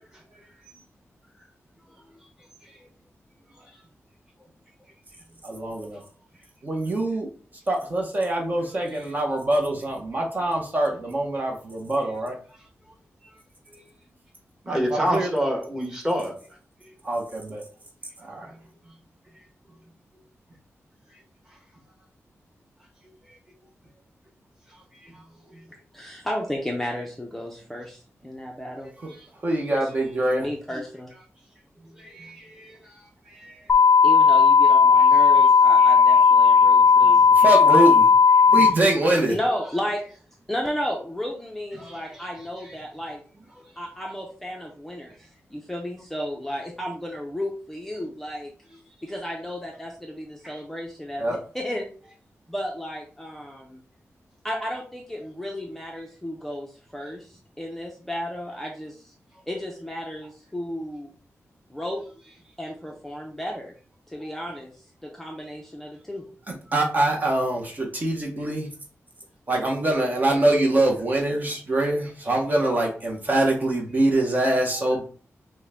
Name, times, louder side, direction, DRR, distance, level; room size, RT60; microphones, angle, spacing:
voice 1, 5.4-6.0 6.6-7.3 7.7-12.4 14.7-15.4 17.0-17.6 18.2-18.5 29.0-29.1 29.4-30.5 37.3-38.1 38.5-39.4 51.2-51.4 66.5-68.7 69.5-75.0, right 1 dB, 35° right, 1 dB, 0.8 m, -24 dB
voice 2, 14.7-16.3 32.0-32.8 33.4-33.5 41.8-42.0, equal, 10° right, 0 dB, 1.2 m, -27 dB
voice 3, 25.9-28.9 29.7-29.9 30.3-31.1 34.0-37.3 39.3-40.0 40.5-43.2 43.8-48.5 49.0-51.2 51.5-51.9 52.5-53.8 54.4-59.1 59.4-61.1 61.7-62.0 62.6-63.7 64.1-66.2, equal, 5° left, -1 dB, 0.6 m, -33 dB
sound 1, 33.7-38.7, left 5 dB, 45° left, 0.5 m, -15 dB
6.1 x 2.1 x 3.4 m, 0.41 s
wide cardioid pair, 180°, 5 cm